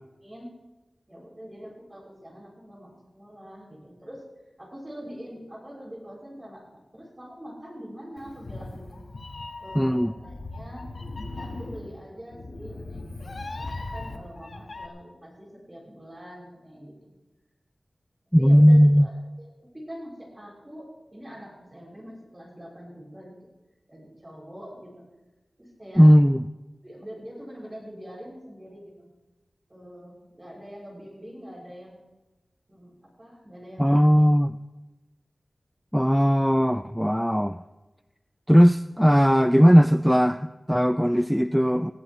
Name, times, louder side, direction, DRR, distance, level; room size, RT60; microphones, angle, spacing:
voice 1, 0.2-0.5 1.1-4.2 4.6-9.0 9.6-10.9 11.3-17.1 18.4-19.5 19.7-23.4 23.9-25.0 25.6-26.2 26.8-29.1 29.7-32.0 32.7-34.3, equal, 25° right, -3 dB, 6.6 m, -44 dB
Meow, 8.2-14.9, left 2 dB, 60° left, 1.5 m, -38 dB
voice 2, 9.8-10.1 18.3-19.1 26.0-26.4 33.8-34.5 35.9-37.6 38.5-41.9, equal, ahead, 11 dB, 0.4 m, -18 dB
20.0 x 16.5 x 3.2 m, 1.1 s
wide cardioid pair, 80°, 0 cm